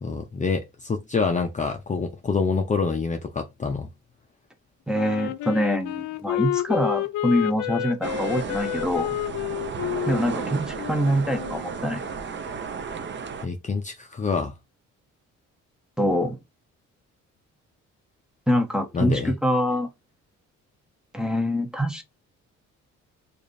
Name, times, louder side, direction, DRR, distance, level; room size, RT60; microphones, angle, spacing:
voice 1, 0.0-3.9 13.4-14.5 18.9-19.3, left 4 dB, 25° left, 0.5 m, -26 dB
Wind instrument woodwind instrument, 4.9-11.7, left 13 dB, 75° left, 0.5 m, -30 dB
voice 2, 4.9-9.2 10.1-12.0 16.0-16.4 18.5-19.9 21.1-22.0, equal, ahead, 0.8 m, -24 dB
sound 1, 8.0-13.5, right 5 dB, 40° right, 0.6 m, -33 dB
4.9 x 2.5 x 2.6 m
cardioid pair, 90°, 30 cm